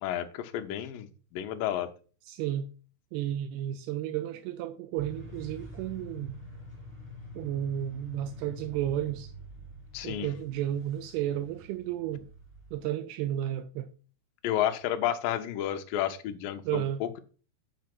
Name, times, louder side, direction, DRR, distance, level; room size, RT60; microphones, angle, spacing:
voice 1, 0.0-1.9 9.9-10.3 14.4-17.2, left 11 dB, 75° left, 2.3 m, -31 dB
voice 2, 2.3-2.7 3.1-6.4 7.4-9.3 10.0-12.3 12.7-13.9 16.7-17.0, right 11 dB, 85° right, 2.5 m, -32 dB
sound 1, 5.0-12.8, left 1 dB, 5° right, 0.8 m, -46 dB
9.6 x 3.9 x 6.0 m
omnidirectional pair, 4.6 m